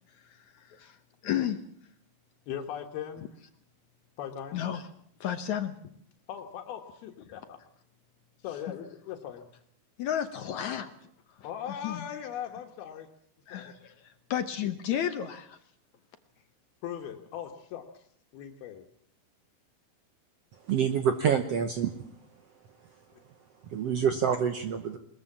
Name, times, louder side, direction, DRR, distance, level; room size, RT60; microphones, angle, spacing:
voice 1, 0.3-1.0 1.2-1.6 4.5-4.8 5.2-5.8 10.0-10.9 11.8-12.1 13.5-15.6, left 10 dB, 65° left, 9 dB, 2.0 m, -32 dB
voice 2, 2.5-3.3 4.2-4.6 6.3-7.6 8.4-9.5 11.4-13.1 13.5-13.7 16.8-18.0 18.3-18.8, left 9 dB, 85° left, 2 dB, 3.3 m, -39 dB
voice 3, 20.7-21.9 23.7-25.0, right 7 dB, 70° right, 8 dB, 1.5 m, -27 dB
21.5 x 21.0 x 7.3 m, 0.65 s
omnidirectional pair, 4.3 m